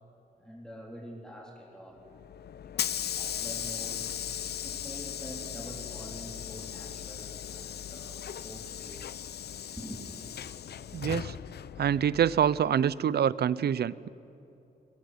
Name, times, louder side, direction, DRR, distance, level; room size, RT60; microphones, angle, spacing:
voice 1, 0.4-2.0 2.6-4.1 4.6-9.1 9.7-10.0, equal, 5° left, -2 dB, 3.8 m, -46 dB
Hiss / Sliding door, 2.1-12.9, left 9 dB, 80° left, 0.6 m, -38 dB
voice 2, 10.9-11.3 11.8-14.1, right 9 dB, 75° right, 19 dB, 0.6 m, -26 dB
23.0 x 22.0 x 9.7 m, 2.8 s
wide cardioid pair, 145°, 17 cm